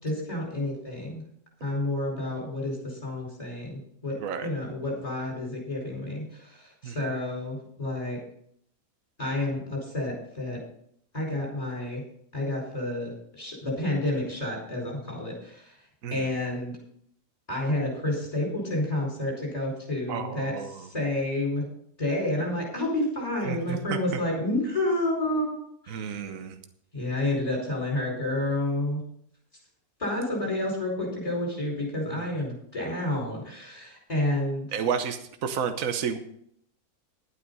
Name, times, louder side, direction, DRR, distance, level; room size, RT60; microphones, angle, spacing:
voice 1, 0.0-1.2 1.6-8.2 9.2-10.6 11.1-12.0 12.3-15.7 16.1-16.8 17.5-21.7 22.0-25.6 25.8-26.2 26.9-29.0 30.0-34.7, left 1 dB, 25° left, -2 dB, 4.8 m, -30 dB
voice 2, 4.2-4.5 6.8-7.0 16.0-16.3 20.1-20.9 23.5-24.2 25.9-26.6 32.1-32.3 34.7-36.2, right 7 dB, 65° right, 8 dB, 1.3 m, -31 dB
11.5 x 9.1 x 5.4 m, 0.70 s
omnidirectional pair, 1.6 m